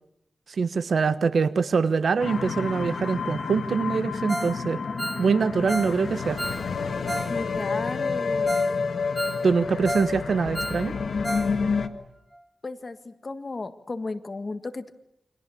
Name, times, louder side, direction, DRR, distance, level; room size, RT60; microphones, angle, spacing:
voice 1, 0.6-4.8 5.2-6.4 9.4-10.9, right 5 dB, 75° right, 13 dB, 1.2 m, -24 dB
sound 1, 2.2-11.9, left 5 dB, 70° left, 1.7 m, -29 dB
Ringtone, 4.3-4.6 4.8-7.4 7.6-7.7 8.2-8.3 8.5-8.7 9.0-10.2 10.4-11.5 11.8-11.9 12.3-12.4, right 1 dB, 10° right, 1.1 m, -33 dB
voice 2, 7.3-8.6 12.6-14.9, left 3 dB, 40° left, 9 dB, 1.7 m, -34 dB
29.5 x 24.5 x 7.2 m, 0.80 s
wide cardioid pair, 95°, 0 cm